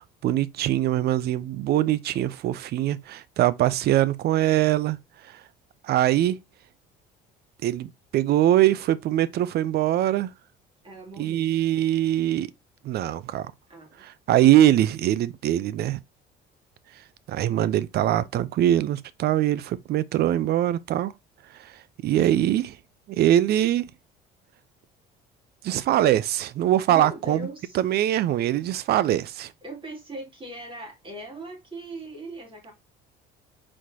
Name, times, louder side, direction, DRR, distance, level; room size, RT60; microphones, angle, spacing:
voice 1, 0.0-5.0 5.8-6.4 7.6-10.3 11.2-12.5 12.8-13.5 14.0-16.0 17.3-21.1 21.6-21.7 22.0-22.8 23.1-23.8 25.6-27.5 27.7-29.5, right 12 dB, 55° right, 0.5 m, -22 dB
voice 2, 10.8-11.6 13.7-14.0 26.9-27.8 29.6-32.7, right 1 dB, 25° right, 2.8 m, -39 dB
4.5 x 4.3 x 2.7 m
supercardioid pair, 95°, 19 cm